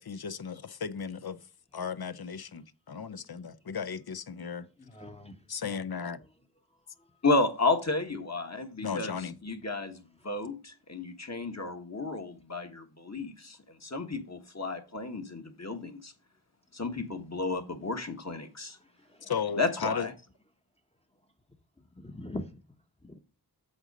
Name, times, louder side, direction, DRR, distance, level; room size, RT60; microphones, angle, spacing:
voice 1, 0.0-1.4 1.7-4.7 5.5-6.2 8.8-9.3 19.3-20.1, left 6 dB, 65° left, 0.6 m, -35 dB
voice 2, 4.8-5.4 18.8-19.3 21.9-22.5 23.0-23.2, left 1 dB, 15° left, 0.8 m, -42 dB
voice 3, 7.2-9.2 9.4-16.1 16.7-18.8 19.6-20.1, left 3 dB, 40° left, 1.3 m, -32 dB
8.0 x 3.9 x 5.2 m
wide cardioid pair, 45°, 40 cm